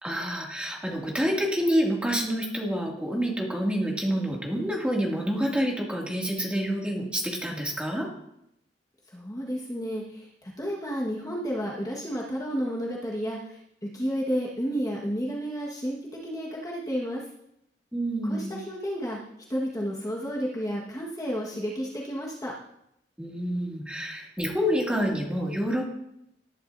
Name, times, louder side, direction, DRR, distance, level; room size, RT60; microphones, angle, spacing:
voice 1, 0.0-8.1 17.9-18.5 23.2-25.9, equal, 5° right, -2 dB, 2.4 m, -28 dB
voice 2, 9.1-13.6 13.9-16.0 16.2-17.2 18.2-19.2 19.5-22.5, equal, 20° left, -4 dB, 1.5 m, -31 dB
19.0 x 11.0 x 2.7 m, 0.79 s
head